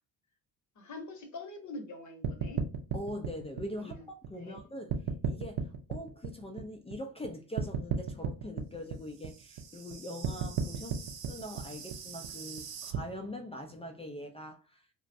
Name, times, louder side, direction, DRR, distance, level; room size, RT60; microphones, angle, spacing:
voice 1, 0.8-2.6 3.8-4.0 4.4-4.6, left 2 dB, 40° left, 0.9 m, -44 dB
sound 1, 2.2-4.6 4.9-7.3 7.6-13.0, right 7 dB, 55° right, 0.6 m, -35 dB
voice 2, 2.9-5.0 5.3-14.8, left 1 dB, 15° left, 0.4 m, -42 dB
2.2 x 2.2 x 2.6 m
hypercardioid pair, 50°, 47 cm